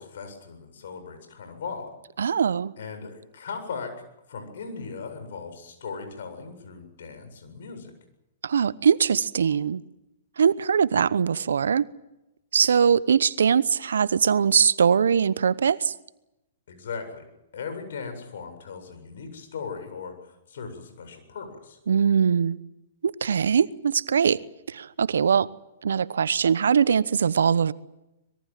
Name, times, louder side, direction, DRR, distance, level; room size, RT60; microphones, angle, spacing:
voice 1, 0.0-2.0 2.8-3.9 4.3-7.9 16.7-17.2 17.5-21.8, left 5 dB, 65° left, 7 dB, 7.7 m, -38 dB
voice 2, 2.2-2.7 8.4-9.8 10.4-11.9 12.5-15.9 21.9-22.6 23.0-24.4 24.7-25.5 25.8-27.7, right 7 dB, 75° right, 18 dB, 1.0 m, -21 dB
25.0 x 22.0 x 7.6 m, 0.91 s
hypercardioid pair, 125°, 0 cm